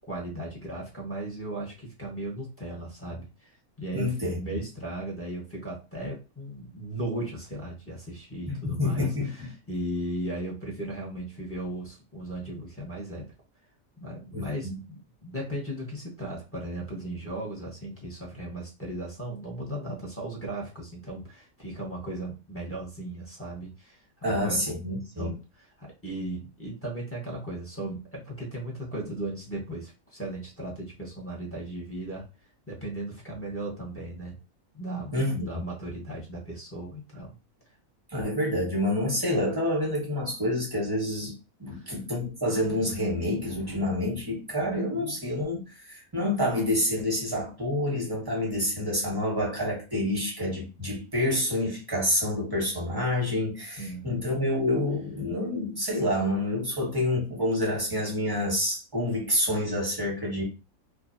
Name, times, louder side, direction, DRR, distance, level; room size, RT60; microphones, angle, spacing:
voice 1, 0.1-13.2 14.0-24.7 25.2-32.2 32.7-34.3 34.7-37.4 41.7-42.0 44.9-45.2 53.8-54.3, right 1 dB, 10° left, 0.8 m, -36 dB
voice 2, 3.9-4.4 8.5-9.5 14.3-14.8 24.2-25.3 35.1-35.5 38.1-41.3 41.6-60.4, left 1 dB, 20° right, 0.8 m, -28 dB
2.5 x 2.4 x 2.6 m
omnidirectional pair, 1.5 m